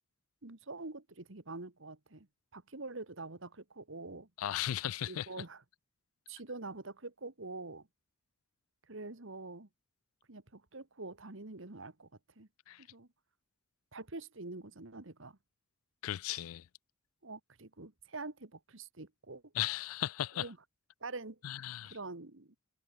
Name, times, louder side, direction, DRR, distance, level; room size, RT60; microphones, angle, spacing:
voice 1, 0.4-2.3 2.5-4.3 5.1-5.6 6.3-7.9 8.9-9.7 10.3-12.1 12.4-12.5 12.8-13.1 13.9-15.4 17.2-19.5 20.4-20.6 21.0-21.4 21.9-22.5, right 3 dB, 65° right, 1.8 m, -45 dB
voice 2, 4.4-5.3 12.7-12.9 16.0-16.7 19.5-20.5 21.4-22.0, left 12 dB, 90° left, 0.4 m, -36 dB
head